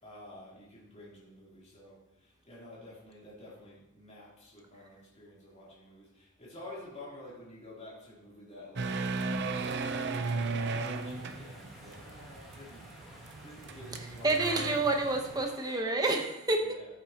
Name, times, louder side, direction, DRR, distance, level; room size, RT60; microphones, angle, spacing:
voice 1, 0.0-9.0 9.3-12.9 13.4-14.6 16.6-16.9, left 1 dB, 30° left, -7 dB, 3.4 m, -50 dB
sound 1, 8.8-15.8, equal, ahead, 2.2 m, -53 dB
sound 2, 8.8-15.5, right 3 dB, 55° right, 0.6 m, -36 dB
voice 2, 13.9-16.8, right 2 dB, 20° right, 3 dB, 1.0 m, -29 dB
14.0 x 7.9 x 2.9 m, 0.89 s
head